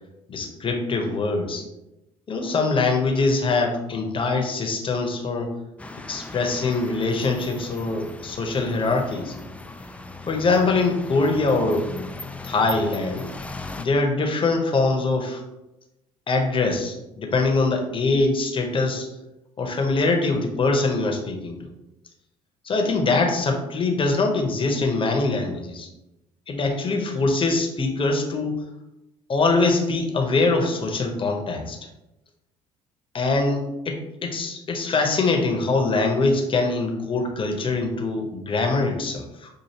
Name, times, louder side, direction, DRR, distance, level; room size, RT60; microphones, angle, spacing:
voice 1, 0.3-1.7 2.3-5.5 6.1-9.4 10.3-11.9 12.4-13.3 13.8-15.4 16.3-19.1 19.6-21.6 22.6-25.9 26.5-28.6 29.3-31.8 33.1-39.5, left 3 dB, 30° left, 3 dB, 0.8 m, -23 dB
sound 1, 5.8-13.9, left 2 dB, 5° left, 0.3 m, -38 dB
5.7 x 2.6 x 2.9 m, 0.95 s
hypercardioid pair, 55°, 18 cm